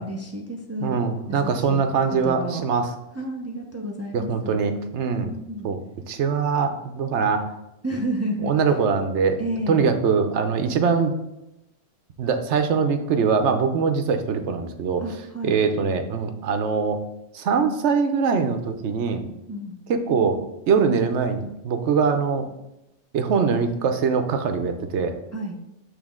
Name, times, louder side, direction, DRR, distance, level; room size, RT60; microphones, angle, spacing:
voice 1, 0.0-1.1 1.4-1.8 2.1-2.7 3.1-4.6 5.2-5.7 7.8-8.5 9.4-9.9 15.0-15.6 19.5-19.8 25.3-25.6, right 1 dB, 25° right, 2 dB, 0.3 m, -31 dB
voice 2, 0.8-2.9 4.1-5.3 5.6-5.8 6.1-7.6 8.4-9.4 9.7-11.1 12.2-15.0 15.4-17.0 17.3-19.2 19.9-20.4 20.7-22.5 23.1-25.1, right 5 dB, 80° right, 7 dB, 1.0 m, -22 dB
8.1 x 3.3 x 3.6 m, 0.90 s
omnidirectional pair, 1.2 m